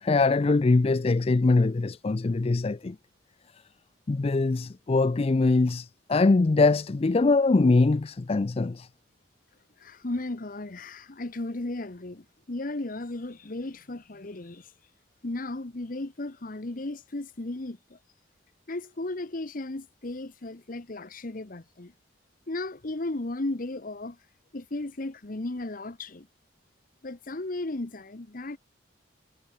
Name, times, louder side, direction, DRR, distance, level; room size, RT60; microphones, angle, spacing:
voice 1, 0.0-3.0 4.1-8.9, left 3 dB, 30° left, 0.4 m, -23 dB
voice 2, 9.8-14.7 15.2-18.0 18.7-21.9 22.5-24.2 24.5-26.3 27.0-28.6, left 2 dB, 45° left, 1.0 m, -35 dB
head